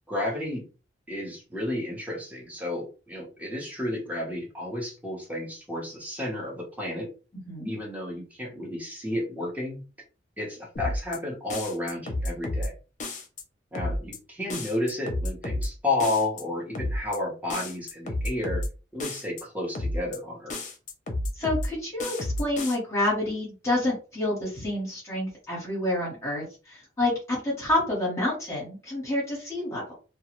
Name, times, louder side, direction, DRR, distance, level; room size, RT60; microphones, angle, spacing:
voice 1, 0.1-0.7 1.1-7.1 7.6-9.8 10.4-12.7 13.7-18.6 18.9-20.6, left 1 dB, 10° right, -1 dB, 0.9 m, -32 dB
sound 1, 10.8-11.2 11.5-12.7 13.0-13.4 13.8-14.2 14.5-15.7 16.0-16.4 16.8-17.2 17.5-18.7 19.0-19.4 19.8-20.2 20.5-21.7 22.0-22.8, left 1 dB, 40° left, 0.7 m, -31 dB
voice 2, 21.3-29.9, left 1 dB, 15° left, -5 dB, 1.1 m, -28 dB
2.4 x 2.3 x 3.0 m, 0.34 s
head